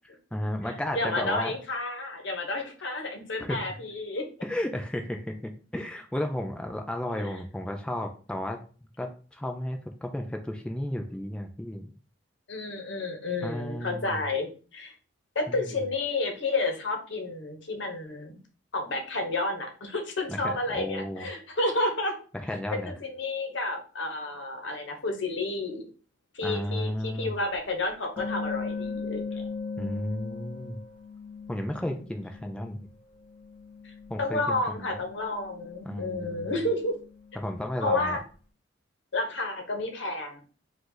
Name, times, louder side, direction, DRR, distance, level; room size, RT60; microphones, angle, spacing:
voice 1, 0.3-1.6 3.4-3.8 4.4-8.6 9.0-11.9 13.4-14.2 15.5-15.7 20.3-21.3 22.5-22.9 26.4-27.3 29.8-30.8 31.5-32.8 34.1-34.9 35.8-36.5 37.4-38.2, left 1 dB, 5° left, 3 dB, 0.4 m, -33 dB
voice 2, 0.9-4.2 7.2-7.4 12.5-14.9 15.3-18.4 18.7-22.1 22.8-25.8 26.3-29.4 33.8-36.9 37.8-38.2 39.1-40.4, left 2 dB, 65° left, 3 dB, 1.1 m, -31 dB
sound 1, 27.5-27.6 28.2-32.9 33.1-38.0, left 4 dB, 30° left, 2.0 m, -39 dB
4.9 x 2.5 x 3.9 m, 0.38 s
head